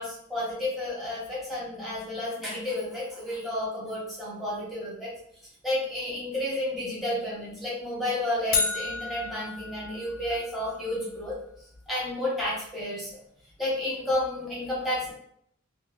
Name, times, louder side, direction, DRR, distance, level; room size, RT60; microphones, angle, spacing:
voice 1, 0.0-5.1 5.6-11.3 11.9-13.1 13.6-15.1, left 1 dB, ahead, -8 dB, 1.3 m, -31 dB
sound 1, 8.5-10.7, left 5 dB, 45° left, 0.4 m, -31 dB
3.2 x 2.7 x 2.9 m, 0.70 s
head